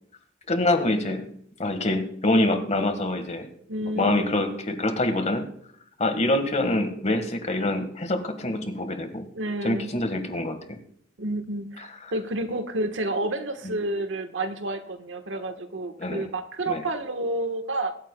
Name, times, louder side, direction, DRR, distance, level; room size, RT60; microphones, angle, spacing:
voice 1, 0.5-1.3 1.6-3.5 4.0-5.5 6.0-9.3 9.6-10.8 16.0-16.2 16.7-16.8, left 1 dB, 40° left, 7 dB, 1.6 m, -25 dB
voice 2, 3.7-4.3 9.3-9.9 11.2-18.0, right 1 dB, 85° right, 7 dB, 1.3 m, -30 dB
23.5 x 8.9 x 2.3 m, 0.66 s
head